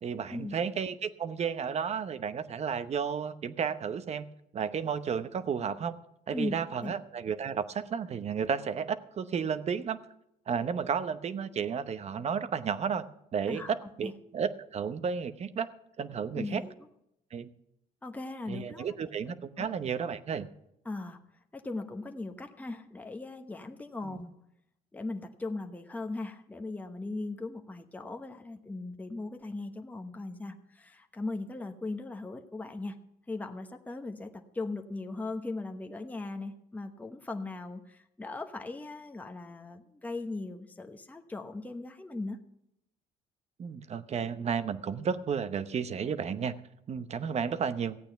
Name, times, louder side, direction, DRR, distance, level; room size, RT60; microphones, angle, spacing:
voice 1, 0.0-4.2 4.5-5.9 6.3-10.0 10.5-13.0 13.3-15.7 16.0-16.6 17.3-17.5 18.5-20.5 24.0-24.2 43.6-46.5 46.9-48.0, right 7 dB, 40° right, 13 dB, 0.8 m, -32 dB
voice 2, 13.5-14.1 16.3-16.7 18.0-19.0 19.3-19.7 20.0-20.1 20.8-21.2 21.5-24.3 24.9-33.0 33.3-42.4, left 2 dB, 10° left, 5 dB, 1.0 m, -39 dB
15.5 x 8.7 x 5.8 m, 0.80 s
cardioid pair, 110°, 17 cm